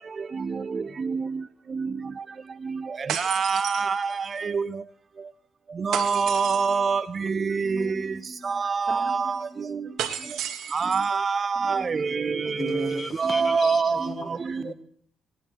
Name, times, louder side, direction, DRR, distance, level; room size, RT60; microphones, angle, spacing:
sound 1, 3.1-4.4 5.9-6.9 10.0-11.2, right 9 dB, 80° right, 1.4 m, -33 dB
voice 1, 3.2-4.1 4.5-4.6 5.9-7.0 8.5-9.4 10.7-11.8 13.2-14.0, right 5 dB, 40° right, 0.4 m, -24 dB
voice 2, 7.6-8.5 8.9-10.3 11.5-12.2 12.4-12.6, right 1 dB, 20° right, 3.2 m, -42 dB
voice 3, 12.4-14.2 14.6-14.7, left 1 dB, 40° left, 1.8 m, -33 dB
18.0 x 10.0 x 4.5 m
cardioid pair, 90°, 0 cm